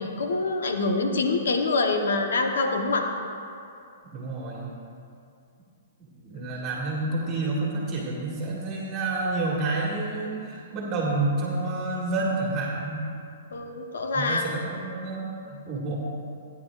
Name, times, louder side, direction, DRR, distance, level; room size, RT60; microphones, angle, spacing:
voice 1, 0.0-3.1 6.3-6.5 13.5-14.5, left 3 dB, 80° left, 3 dB, 1.0 m, -25 dB
voice 2, 4.1-4.7 6.0-13.1 14.1-16.0, right 2 dB, 35° right, -3 dB, 1.9 m, -29 dB
16.5 x 9.7 x 2.5 m, 2.4 s
hypercardioid pair, 135°, 0 cm